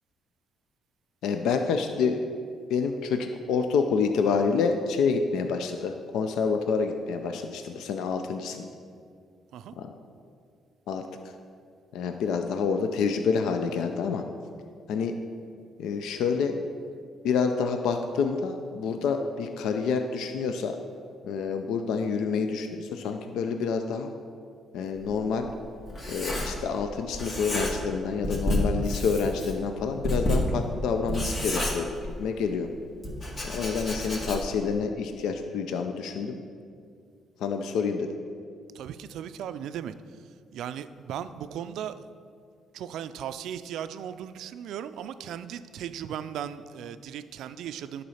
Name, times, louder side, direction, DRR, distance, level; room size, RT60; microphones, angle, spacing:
voice 1, 1.2-2.3 2.7-8.6 9.8-9.9 10.9-11.0 11.9-14.2 14.9-15.2 15.8-16.6 17.2-20.7 21.2-24.1 24.7-25.5 26.1-32.7 33.4-36.4 37.4-38.1, left 5 dB, 85° left, 6 dB, 0.4 m, -28 dB
Writing, 25.0-26.9 27.1-28.0 28.2-32.4 33.0-34.7, left 1 dB, 40° left, 1.8 m, -30 dB
voice 2, 38.7-39.9 40.5-42.0 42.7-48.0, right 9 dB, 80° right, 12 dB, 0.3 m, -37 dB
10.5 x 4.1 x 5.6 m, 2.2 s
cardioid pair, 90°, 0 cm